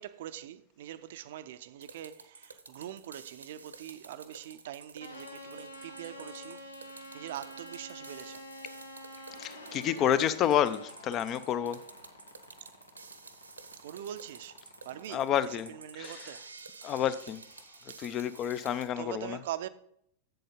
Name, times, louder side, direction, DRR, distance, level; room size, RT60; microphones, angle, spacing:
voice 1, 0.0-8.4 8.8-8.9 9.2-9.5 9.7-10.0 12.5-12.8 13.7-16.4 17.9-18.0 19.0-19.7, right 11 dB, 55° right, 0.5 m, -43 dB
sound 1, 1.8-18.9, right 4 dB, 80° right, 0.9 m, -50 dB
sound 2, 5.0-15.1, left 1 dB, 80° left, 1.1 m, -49 dB
voice 2, 9.4-11.8 15.1-15.7 16.0-16.3 16.8-17.4 18.0-19.4, left 10 dB, 35° left, 0.6 m, -29 dB
7.8 x 7.6 x 5.1 m
figure-of-eight pair, 90°, 0 cm